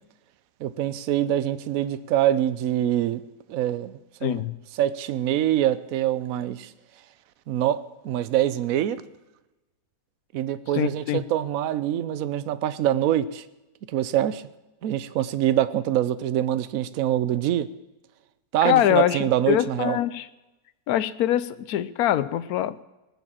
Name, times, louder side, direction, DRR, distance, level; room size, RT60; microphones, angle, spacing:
voice 1, 0.6-3.2 3.5-3.9 4.2-4.4 4.8-6.7 7.5-9.0 10.3-13.4 13.9-14.4 14.8-17.7 18.5-20.0, right 12 dB, 65° right, 15 dB, 1.0 m, -24 dB
voice 2, 4.2-4.6 10.7-11.2 18.6-20.3 20.9-22.8, left 12 dB, 70° left, 15 dB, 1.1 m, -23 dB
19.5 x 7.4 x 7.4 m, 1.0 s
omnidirectional pair, 1.7 m